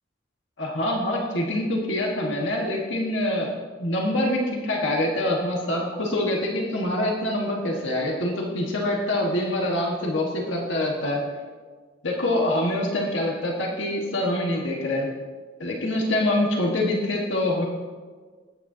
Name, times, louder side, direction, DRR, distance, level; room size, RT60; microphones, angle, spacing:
voice 1, 0.6-3.5 3.8-11.2 12.0-15.1 15.6-17.6, left 1 dB, 80° left, -1 dB, 1.6 m, -25 dB
20.0 x 9.2 x 2.8 m, 1.5 s
head